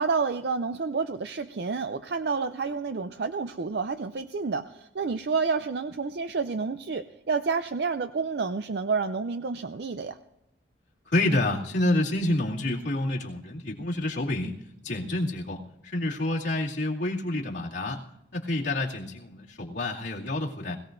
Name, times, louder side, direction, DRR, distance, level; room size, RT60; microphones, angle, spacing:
voice 1, 0.0-10.2, right 4 dB, 65° right, 9 dB, 0.5 m, -29 dB
voice 2, 11.1-14.6 14.8-18.0 18.3-20.8, left 1 dB, 80° left, -4 dB, 2.5 m, -28 dB
21.0 x 17.0 x 2.6 m, 0.87 s
head